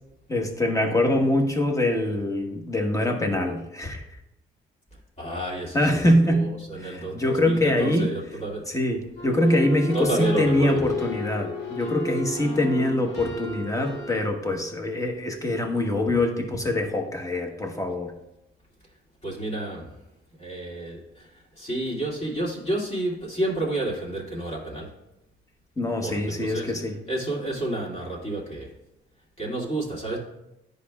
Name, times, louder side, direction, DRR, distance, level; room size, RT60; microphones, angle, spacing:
voice 1, 0.3-4.0 5.7-6.5 6.8-8.1 8.7-18.1 25.8-27.0, left 1 dB, 15° left, 3 dB, 1.2 m, -24 dB
voice 2, 5.2-8.6 9.9-10.8 19.2-19.9 20.4-24.9 26.0-26.7 27.1-28.8 29.4-30.2, right 2 dB, 35° left, -3 dB, 2.3 m, -30 dB
sound 1, 9.2-14.3, left 2 dB, 65° left, 1.5 m, -32 dB
10.0 x 5.3 x 2.3 m, 0.87 s
cardioid pair, 90°, 20 cm